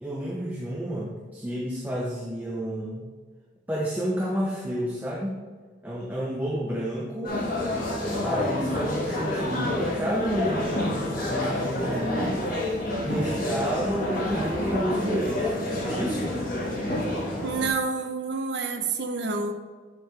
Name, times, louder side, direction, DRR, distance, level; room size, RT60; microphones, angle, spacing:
voice 1, 0.0-3.1 3.7-5.4 5.8-7.4 8.2-12.5 13.0-16.4, equal, 10° right, -3 dB, 0.8 m, -30 dB
sound 1, 7.2-17.7, left 1 dB, 45° left, 1.8 m, -28 dB
voice 2, 17.4-19.5, right 4 dB, 65° right, 6 dB, 0.8 m, -28 dB
8.3 x 6.6 x 3.4 m, 1.5 s
head